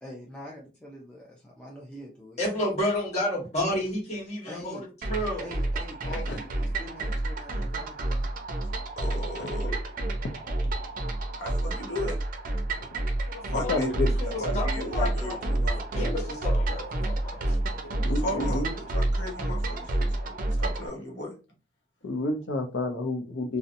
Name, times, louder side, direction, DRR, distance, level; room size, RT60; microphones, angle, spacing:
voice 1, 0.0-2.4 4.5-4.9 5.4-8.3, equal, 5° left, 0.4 m, -44 dB
voice 2, 2.4-4.8 5.1-5.5 6.0-6.4 13.2-15.6 15.9-17.9, left 1 dB, 40° left, 1.2 m, -31 dB
sound 1, 5.0-20.9, right 1 dB, 50° right, 0.5 m, -29 dB
voice 3, 6.1-6.4 9.4-9.5 10.2-10.3 12.8-12.9 13.5-14.1 18.0-18.7 22.0-23.6, left 2 dB, 90° left, 0.5 m, -30 dB
voice 4, 9.0-9.8 11.4-12.2 13.5-13.9 14.4-15.8 18.1-21.3, left 1 dB, 70° left, 1.0 m, -36 dB
2.7 x 2.1 x 2.5 m
head